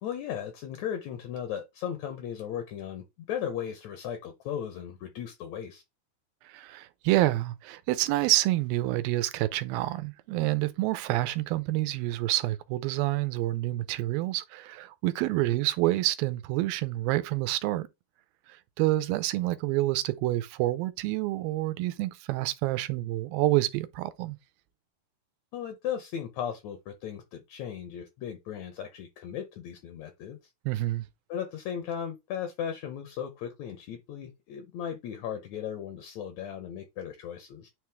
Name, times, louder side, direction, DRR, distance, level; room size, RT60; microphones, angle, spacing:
voice 1, 0.0-5.8 25.5-30.4 31.3-37.7, left 9 dB, 75° left, 1.6 m, -36 dB
voice 2, 6.5-17.9 18.8-24.4 30.7-31.0, right 17 dB, 85° right, 2.4 m, -28 dB
9.4 x 3.2 x 3.4 m
omnidirectional pair, 4.1 m